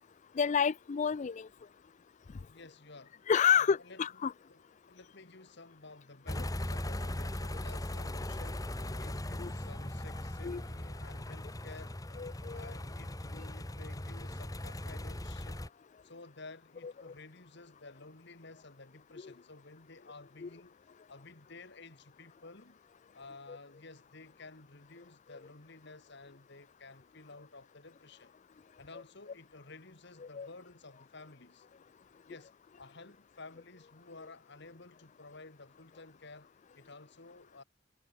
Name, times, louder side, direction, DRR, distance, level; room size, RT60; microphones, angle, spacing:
voice 1, 0.4-1.5 3.3-4.3 9.4-9.5 10.4-10.6 12.2-12.7 17.0-17.1 19.2-19.3 20.4-20.5 23.5-23.6 30.3-30.5, left 7 dB, 35° left, 0.4 m, -30 dB
voice 2, 2.5-4.0 4.5-12.0 12.5-15.6 16.0-20.8 21.1-22.8 23.1-28.3 28.8-31.7 32.3-37.6, left 3 dB, 60° left, 2.7 m, -53 dB
sound 1, 6.3-15.7, left 1 dB, 20° left, 1.4 m, -39 dB
head